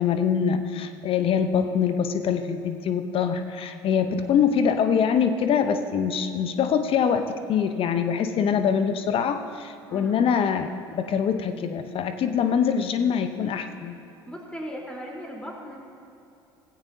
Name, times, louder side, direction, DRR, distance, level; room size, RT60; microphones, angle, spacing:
voice 1, 0.0-14.0, left 7 dB, 45° left, 9 dB, 0.8 m, -24 dB
voice 2, 14.3-15.8, equal, 5° left, -2 dB, 3.7 m, -37 dB
17.0 x 16.0 x 2.8 m, 2.6 s
hypercardioid pair, 65°, 13 cm